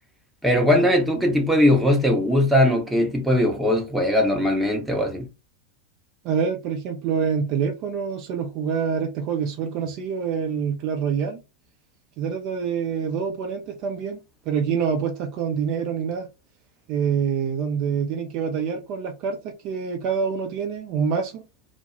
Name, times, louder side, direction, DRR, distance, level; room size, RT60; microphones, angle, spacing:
voice 1, 0.4-5.3, left 1 dB, 5° right, 0.7 m, -20 dB
voice 2, 6.2-11.4 12.2-14.2 14.5-16.3 16.9-21.4, right 6 dB, 40° right, 0.5 m, -26 dB
2.2 x 2.1 x 2.9 m
figure-of-eight pair, 90°, 0 cm